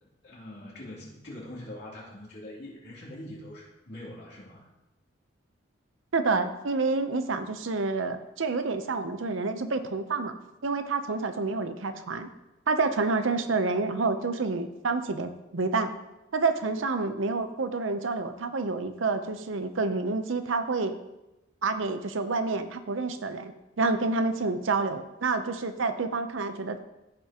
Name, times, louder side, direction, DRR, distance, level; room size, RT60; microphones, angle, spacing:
voice 1, 0.2-4.6, left 1 dB, 55° left, -6 dB, 3.0 m, -43 dB
voice 2, 6.1-10.4 10.6-12.3 12.7-15.9 16.3-20.9 21.6-26.8, right 3 dB, 90° right, 9 dB, 0.7 m, -28 dB
14.5 x 5.6 x 3.0 m, 0.96 s
head